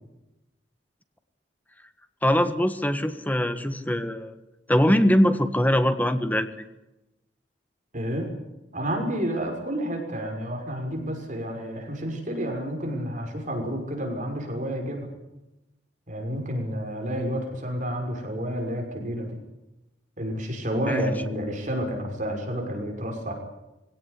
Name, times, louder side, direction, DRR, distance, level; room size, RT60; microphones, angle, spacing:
voice 1, 2.2-4.3 4.7-6.6 20.9-21.1, equal, 10° left, 9 dB, 1.5 m, -22 dB
voice 2, 7.9-8.3 8.7-15.1 16.1-19.4 20.2-23.3, equal, 45° right, 2 dB, 6.1 m, -30 dB
23.0 x 17.5 x 10.0 m, 0.96 s
head